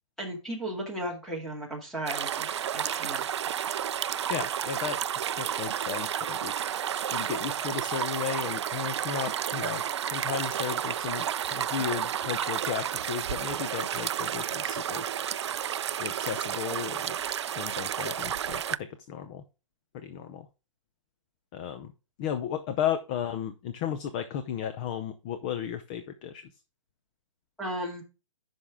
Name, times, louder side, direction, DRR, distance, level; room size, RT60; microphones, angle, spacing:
voice 1, 0.2-3.2 27.6-28.0, right 1 dB, ahead, -2 dB, 2.1 m, -35 dB
sound 1, 2.1-18.8, right 9 dB, 55° right, 0.4 m, -31 dB
voice 2, 4.3-5.0 5.3-6.5 7.1-9.8 10.1-11.2 11.5-15.1 16.0-17.2 17.5-19.4 19.9-20.5 21.5-21.9 22.2-26.5, left 9 dB, 20° left, 10 dB, 0.4 m, -34 dB
10.0 x 5.6 x 3.5 m, 0.31 s
hypercardioid pair, 160°, 17 cm